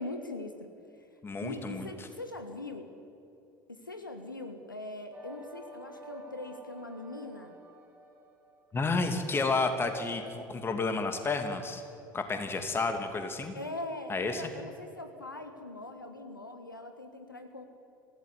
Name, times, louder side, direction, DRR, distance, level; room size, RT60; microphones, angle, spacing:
voice 1, 0.0-2.9 3.7-7.6 13.5-17.7, left 2 dB, 85° left, 7 dB, 1.5 m, -41 dB
voice 2, 1.2-1.9 8.7-11.8 12.1-13.5 14.1-14.4, left 3 dB, 20° left, 6 dB, 2.8 m, -31 dB
sound 1, 5.1-8.8, equal, 15° right, 4.4 m, -50 dB
25.0 x 16.0 x 9.7 m, 2.6 s
figure-of-eight pair, 70°, 11 cm